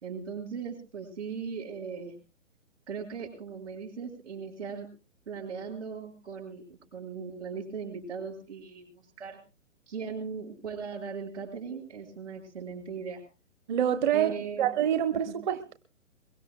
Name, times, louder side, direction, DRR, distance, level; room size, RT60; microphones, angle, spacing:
voice 1, 0.0-2.1 2.9-4.9 5.3-9.4 9.9-13.2 14.1-14.7 15.3-15.4, right 6 dB, 60° right, -3 dB, 5.8 m, -38 dB
voice 2, 13.7-15.7, right 10 dB, 35° right, 10 dB, 0.9 m, -27 dB
22.5 x 22.5 x 2.3 m, 0.35 s
figure-of-eight pair, 130°, 39 cm